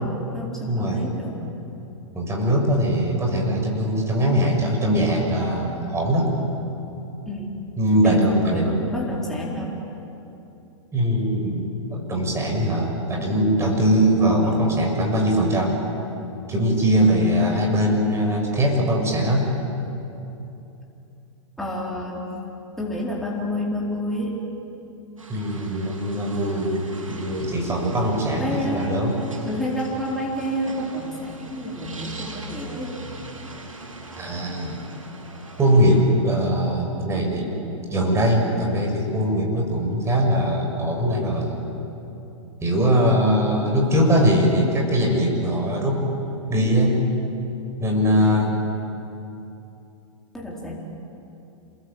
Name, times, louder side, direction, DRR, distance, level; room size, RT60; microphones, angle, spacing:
voice 1, 0.0-1.5 7.3-7.5 8.0-9.7 14.4-14.6 21.6-22.3 22.8-24.4 28.4-29.0 29.4-32.9 36.2-36.3 50.3-50.8, left 1 dB, ahead, -4 dB, 4.4 m, -29 dB
voice 2, 0.7-1.2 2.1-6.3 7.8-8.7 10.9-15.8 16.5-19.4 25.3-26.8 27.1-29.2 34.2-34.8 35.6-37.5 37.9-41.6 42.6-46.0 46.5-47.0 47.8-48.5, equal, 15° right, 1 dB, 6.8 m, -21 dB
sound 1, 25.2-36.0, right 2 dB, 90° right, 6.6 m, -40 dB
28.0 x 21.5 x 8.8 m, 2.9 s
hypercardioid pair, 115°, 17 cm